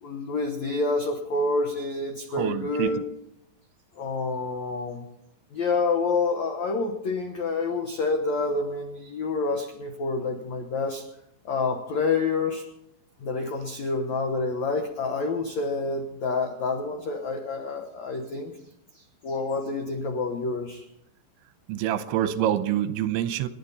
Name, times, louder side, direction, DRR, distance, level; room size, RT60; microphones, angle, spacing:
voice 1, 0.0-3.0 4.0-5.0 5.5-11.0 11.4-12.7 13.2-18.5 18.9-20.8, left 3 dB, 90° left, 3 dB, 1.5 m, -28 dB
voice 2, 2.3-3.0 21.7-23.5, right 11 dB, 85° right, 11 dB, 3.2 m, -26 dB
29.0 x 11.0 x 4.2 m, 0.81 s
omnidirectional pair, 5.4 m